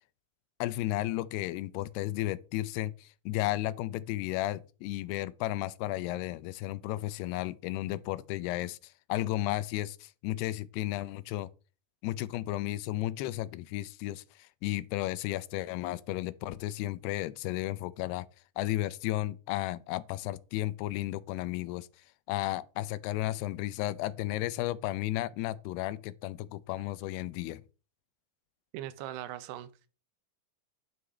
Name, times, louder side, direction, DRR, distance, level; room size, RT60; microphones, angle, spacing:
voice 1, 0.6-11.5 12.0-18.3 18.6-21.9 22.3-27.6, left 15 dB, 85° left, 2.7 m, -33 dB
voice 2, 28.7-29.9, right 13 dB, 90° right, 2.8 m, -40 dB
9.4 x 8.1 x 3.3 m
omnidirectional pair, 4.6 m